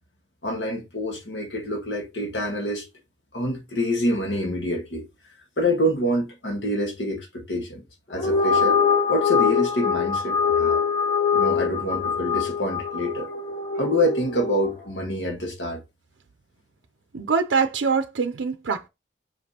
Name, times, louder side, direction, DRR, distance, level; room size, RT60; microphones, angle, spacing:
voice 1, 0.4-2.9 3.3-5.0 5.6-7.8 8.1-8.8 9.1-10.8 11.3-13.3 13.7-15.8, equal, 70° left, 1.5 m, -26 dB
sound 1, 8.1-14.7, left 6 dB, 30° left, 0.8 m, -23 dB
voice 2, 17.1-18.9, right 5 dB, 85° right, 0.5 m, -24 dB
6.4 x 5.2 x 2.9 m
head